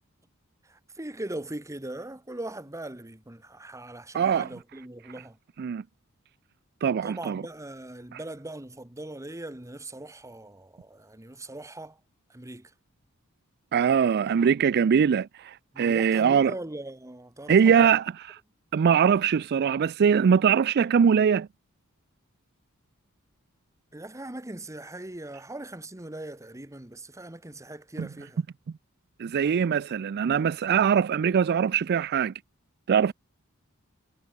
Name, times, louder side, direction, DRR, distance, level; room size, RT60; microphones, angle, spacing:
voice 1, 0.6-5.4 7.0-12.0 12.3-12.7 15.7-18.0 23.9-28.4, right 1 dB, 15° right, 1.4 m, -40 dB
voice 2, 4.1-4.5 5.6-5.8 6.8-7.4 8.1-8.2 13.7-16.5 17.5-18.1 18.7-21.5 28.0-28.1 29.2-32.3 32.9-33.1, right 7 dB, 50° right, 0.3 m, -22 dB
head